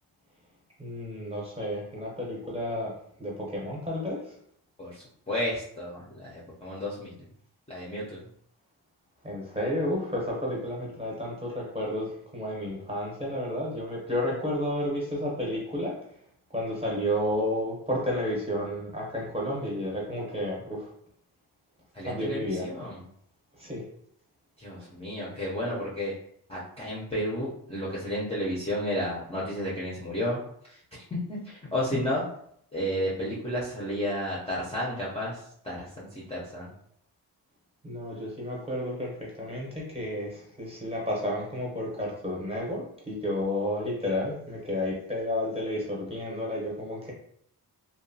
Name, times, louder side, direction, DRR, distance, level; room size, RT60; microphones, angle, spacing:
voice 1, 0.8-2.9 3.2-4.2 9.2-16.0 16.5-20.9 22.0-22.7 23.6-23.8 37.8-47.1, left 1 dB, 15° right, -4 dB, 0.7 m, -31 dB
voice 2, 4.8-7.2 7.7-8.2 21.9-23.0 24.6-26.1 26.5-30.4 30.7-32.2 32.7-36.7, left 1 dB, 15° left, -6 dB, 0.4 m, -32 dB
2.8 x 2.2 x 2.6 m, 0.67 s
wide cardioid pair, 155°, 40 cm